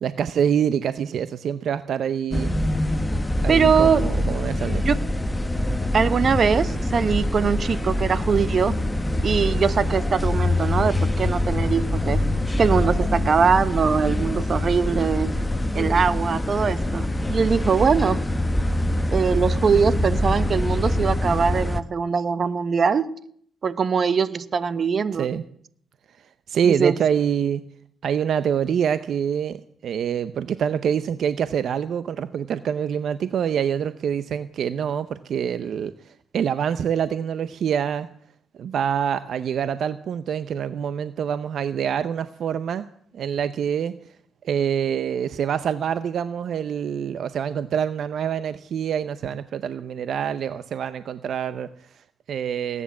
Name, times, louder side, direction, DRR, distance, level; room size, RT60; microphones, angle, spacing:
voice 1, 0.0-2.5 3.4-4.8 25.2-25.4 26.5-27.6 28.0-38.1 38.6-42.9 43.1-43.9 44.4-52.8, right 8 dB, 65° right, 13 dB, 0.7 m, -25 dB
sound 1, 2.3-21.8, left 1 dB, 10° left, 1.1 m, -24 dB
voice 2, 3.5-4.1 4.8-5.0 5.9-8.8 9.2-12.2 12.6-15.3 15.7-18.2 19.1-23.1 23.6-25.3 26.6-27.0, right 6 dB, 45° right, 14 dB, 1.0 m, -22 dB
19.0 x 9.9 x 7.3 m, 0.64 s
cardioid pair, 90°, 0 cm